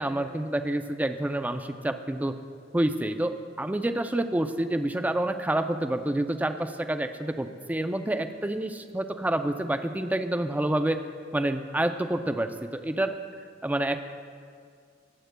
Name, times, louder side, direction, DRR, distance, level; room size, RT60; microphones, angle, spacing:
voice 1, 0.0-2.3 2.7-11.0 11.3-13.2 13.6-14.0, right 1 dB, 10° right, 8 dB, 0.3 m, -28 dB
20.0 x 7.9 x 2.2 m, 2.1 s
head